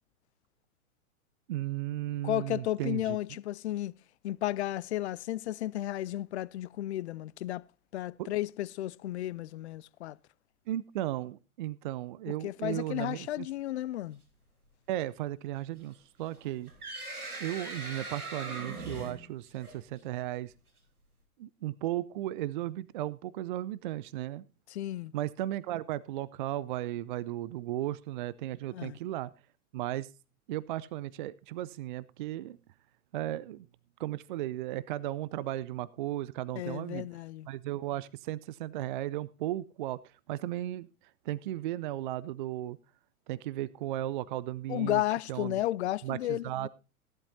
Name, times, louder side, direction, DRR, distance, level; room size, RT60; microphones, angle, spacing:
voice 1, 1.5-3.2 8.2-8.3 10.7-13.5 14.9-16.7 17.4-20.5 21.4-24.4 25.1-29.3 29.7-30.1 30.5-32.6 33.1-33.7 34.0-37.1 37.5-40.0 40.3-40.9 41.3-42.8 43.3-45.0 45.3-45.6 46.0-46.7, right 14 dB, 35° right, 0.5 m, -35 dB
voice 2, 2.2-3.9 4.2-7.6 7.9-10.2 12.3-14.2 24.7-25.1 28.7-29.0 36.5-37.5 44.7-46.7, left 14 dB, 50° left, 0.6 m, -33 dB
sound 1, 16.3-20.0, right 2 dB, 80° right, 3.5 m, -40 dB
16.5 x 11.5 x 2.6 m
figure-of-eight pair, 105°, 44 cm